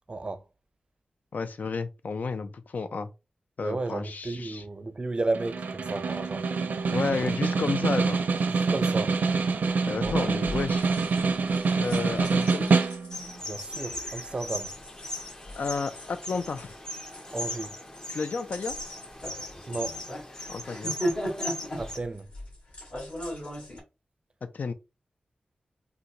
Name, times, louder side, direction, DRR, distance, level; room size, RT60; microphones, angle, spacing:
voice 1, 0.1-0.4 3.6-6.4 7.2-7.3 8.5-9.2 9.9-10.1 13.4-14.7 17.3-17.7 19.7-20.0 21.8-22.3, right 3 dB, 35° right, 0.5 m, -33 dB
voice 2, 1.3-3.1 3.6-4.6 6.9-8.2 9.8-10.9 11.8-12.8 15.6-16.8 18.1-18.7 20.5-20.9 24.5-24.7, left 4 dB, 70° left, 0.5 m, -31 dB
Snare drum, 5.3-13.3, right 4 dB, 85° right, 0.6 m, -26 dB
sound 1, 7.7-7.8 8.2-8.4 9.1-9.2 10.0-23.8, equal, 50° left, 1.8 m, -39 dB
sound 2, 13.1-22.0, left 1 dB, 20° left, 0.6 m, -39 dB
3.9 x 2.2 x 2.9 m
wide cardioid pair, 100°, 3 cm